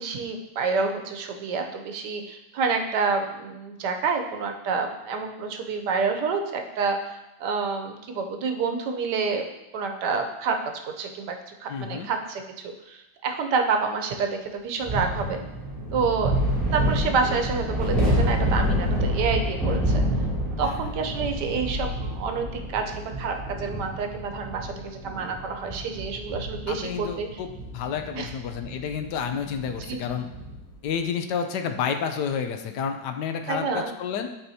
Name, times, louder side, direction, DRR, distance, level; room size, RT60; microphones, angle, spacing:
voice 1, 0.0-9.5 9.7-10.6 10.8-15.4 15.9-16.3 16.7-20.0 20.6-27.4 28.1-28.3 29.9-30.0 33.5-33.9, right 5 dB, 80° right, 4 dB, 1.3 m, -28 dB
voice 2, 11.7-12.1 20.6-20.8 26.7-30.3 30.8-34.3, left 7 dB, 80° left, 6 dB, 1.2 m, -30 dB
sound 1, 14.8-30.6, equal, ahead, 2.4 m, -28 dB
11.0 x 4.3 x 2.8 m, 0.93 s
omnidirectional pair, 1.8 m